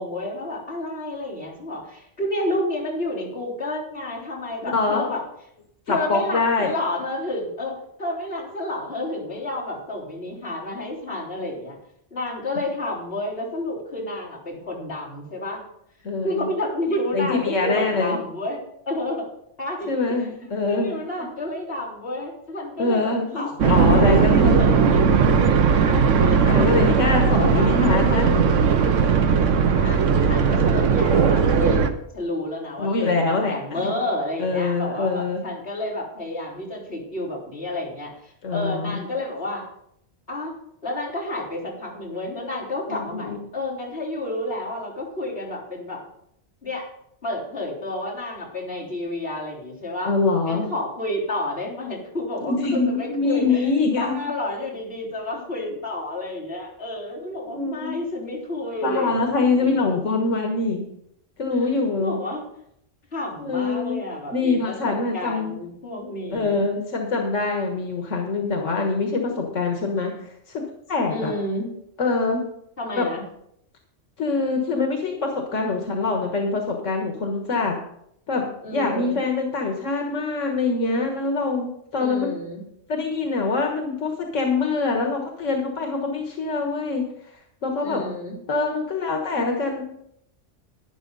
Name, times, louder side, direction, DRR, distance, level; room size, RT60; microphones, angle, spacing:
voice 1, 0.0-5.2 5.9-11.8 12.1-15.6 16.2-18.6 18.9-19.3 19.6-19.9 20.2-20.3 20.6-25.1 25.7-27.7 29.8-31.9 32.1-39.6 40.3-40.5 40.8-46.0 46.6-46.9 47.2-50.1 50.4-60.0 62.0-62.4 63.1-66.6 71.1-71.7 72.8-73.2 78.6-79.2 82.0-82.6 87.8-88.4, left 1 dB, 50° left, -6 dB, 4.2 m, -30 dB
voice 2, 4.7-5.1 5.9-6.7 16.0-16.5 17.1-18.2 19.9-20.9 21.2-21.3 22.8-23.3 23.6-24.6 26.4-28.5 28.9-29.0 32.8-33.9 34.4-35.4 38.4-39.0 42.9-43.4 50.0-50.7 52.4-54.2 57.5-58.0 58.8-60.8 61.4-62.2 63.4-64.0 64.3-65.5 66.3-71.3 72.0-72.5 73.0-73.1 74.2-77.8 78.3-78.4 78.7-82.3 82.9-87.1 87.6-88.0 88.5-89.8, left 3 dB, 90° left, 2 dB, 1.8 m, -24 dB
sound 1, 23.6-31.9, right 6 dB, 90° right, 1.2 m, -18 dB
12.0 x 10.0 x 4.0 m, 0.74 s
omnidirectional pair, 1.2 m